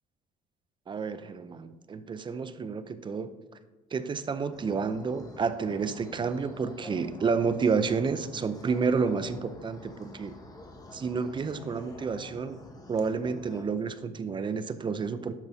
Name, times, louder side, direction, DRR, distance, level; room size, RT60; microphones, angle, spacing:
voice 1, 0.9-3.3 3.9-10.3 10.9-12.6 12.9-15.3, right 5 dB, 30° right, 12 dB, 0.5 m, -30 dB
sound 1, 4.5-13.6, left 1 dB, 20° left, 1.1 m, -48 dB
12.0 x 5.5 x 2.7 m, 1.2 s
cardioid pair, 110°, 17 cm